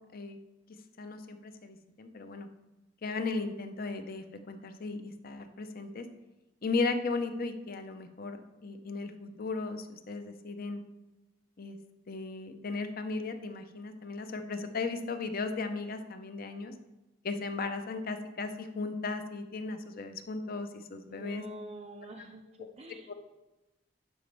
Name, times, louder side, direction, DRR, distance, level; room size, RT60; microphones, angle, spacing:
voice 1, 1.0-2.5 3.0-6.0 6.6-10.8 11.6-11.8 12.1-16.7 17.2-21.4 23.1-23.2, left 3 dB, 50° left, 8 dB, 0.7 m, -36 dB
voice 2, 21.1-23.1, right 1 dB, 35° right, 1 dB, 0.5 m, -46 dB
11.0 x 5.1 x 3.4 m, 1.0 s
head